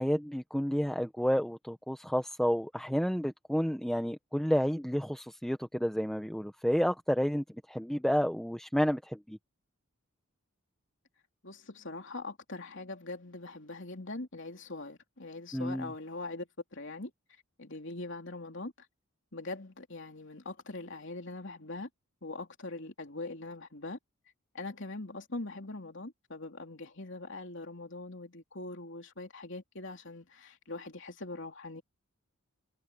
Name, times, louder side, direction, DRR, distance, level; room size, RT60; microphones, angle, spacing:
voice 1, 0.0-9.4 15.5-15.9, equal, ahead, 0.7 m, -30 dB
voice 2, 11.4-17.1 17.6-18.9 19.3-21.9 22.2-24.0 24.5-31.8, left 2 dB, 55° left, 3.4 m, -42 dB
head